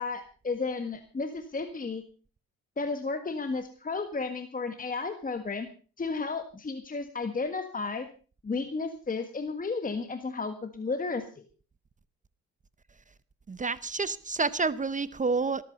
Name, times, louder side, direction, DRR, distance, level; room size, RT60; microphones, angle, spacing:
voice 1, 0.0-2.0 2.8-5.7 6.0-8.1 8.4-11.4, left 4 dB, 30° left, 1.6 m, -33 dB
voice 2, 13.5-15.6, right 4 dB, 25° right, 0.8 m, -29 dB
15.0 x 13.5 x 5.3 m
cardioid pair, 90°, 30 cm